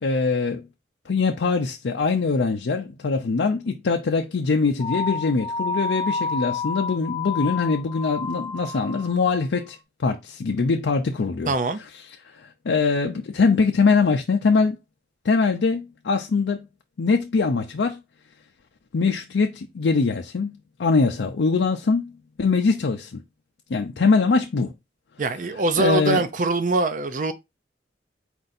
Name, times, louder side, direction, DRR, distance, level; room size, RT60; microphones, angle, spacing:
voice 1, 0.0-0.7 1.1-11.5 12.2-14.8 15.2-16.7 17.0-18.0 18.9-22.1 22.4-23.2 23.7-24.7 25.8-26.2, left 4 dB, 85° left, 0.5 m, -22 dB
sound 1, 4.8-9.4, left 4 dB, 25° left, 0.4 m, -29 dB
voice 2, 11.5-11.8 25.2-27.3, right 3 dB, 45° right, 0.5 m, -23 dB
4.4 x 2.6 x 4.0 m
head